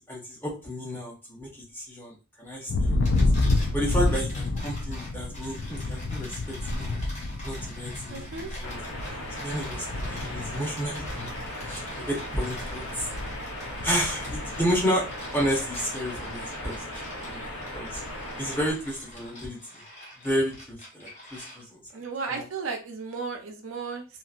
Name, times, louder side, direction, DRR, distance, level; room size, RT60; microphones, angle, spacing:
voice 1, 0.1-3.1 3.7-7.0 7.4-8.8 9.4-11.3 11.6-13.1 13.8-15.0 15.3-18.0 18.4-19.6 20.2-21.8 22.3-22.4, equal, 10° left, -3 dB, 0.8 m, -31 dB
Thunder, 2.7-15.6 15.9-16.5 16.8-18.3, left 2 dB, 55° left, 0.3 m, -30 dB
sound 1, 2.9-21.9, left 1 dB, 30° left, 1.1 m, -45 dB
voice 2, 8.1-8.5 21.9-24.1, right 4 dB, 65° right, 4 dB, 0.5 m, -34 dB
sound 2, 8.6-18.7, left 1 dB, 75° left, 0.7 m, -38 dB
2.8 x 2.5 x 2.4 m, 0.31 s
head